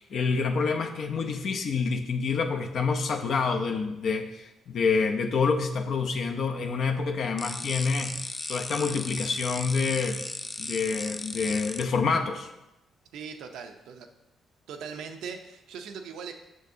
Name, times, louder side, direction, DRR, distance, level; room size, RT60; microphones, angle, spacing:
voice 1, 0.0-10.2 10.6-12.5, left 4 dB, 60° left, 5 dB, 0.6 m, -27 dB
sound 1, 7.4-11.8, left 2 dB, 20° left, 0.3 m, -36 dB
voice 2, 13.1-14.1 14.7-16.3, right 6 dB, 85° right, 5 dB, 0.6 m, -40 dB
6.4 x 6.3 x 2.7 m, 0.93 s
cardioid pair, 90°, 0 cm